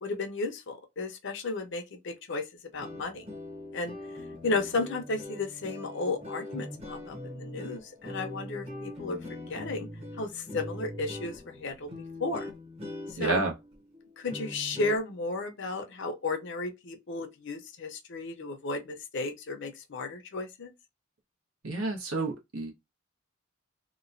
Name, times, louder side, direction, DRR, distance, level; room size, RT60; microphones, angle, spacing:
voice 1, 0.0-2.4 2.7-3.2 3.7-4.0 4.4-9.2 9.5-9.9 10.2-11.9 12.2-12.5 13.1-13.4 14.2-20.7, left 3 dB, 60° left, 0.7 m, -34 dB
sound 1, 2.7-15.0, left 1 dB, 30° right, 0.8 m, -42 dB
voice 2, 13.2-13.5 21.6-22.7, right 3 dB, 80° right, 1.1 m, -29 dB
2.9 x 2.3 x 2.6 m
head